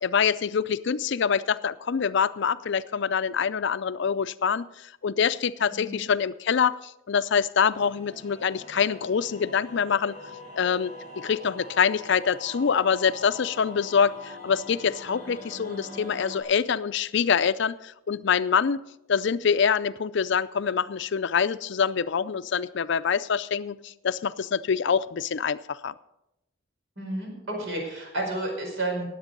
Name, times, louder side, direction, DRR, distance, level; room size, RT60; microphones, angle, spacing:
voice 1, 0.0-10.2 10.6-18.8 19.1-25.9, left 6 dB, 60° left, 14 dB, 0.5 m, -25 dB
sound 1, 7.7-16.4, left 2 dB, 50° right, 4.5 m, -43 dB
voice 2, 27.0-29.1, right 1 dB, 65° right, 0 dB, 5.0 m, -31 dB
18.5 x 8.0 x 5.2 m, 0.87 s
head